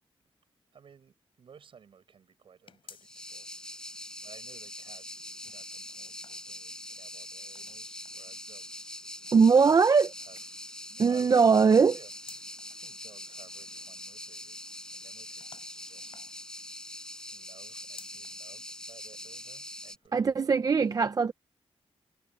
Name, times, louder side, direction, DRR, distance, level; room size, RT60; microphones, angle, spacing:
voice 1, 0.7-5.1 5.4-9.0 9.7-10.6 10.9-16.2 17.3-20.9, right 7 dB, 65° right, 6.9 m, -57 dB
sound 1, 2.7-3.5 3.9-4.0 5.2-6.9 7.5-8.3 9.2-10.3 11.7-12.8 15.4-16.8 17.7-18.5 18.9-19.0 20.0-20.1, left 6 dB, 65° left, 3.9 m, -56 dB
sound 2, 3.0-20.0, left 1 dB, 10° left, 6.2 m, -43 dB
voice 2, 9.3-10.1 11.0-12.0 20.1-21.3, right 5 dB, 40° right, 0.5 m, -21 dB
wide cardioid pair, 145°, 10 cm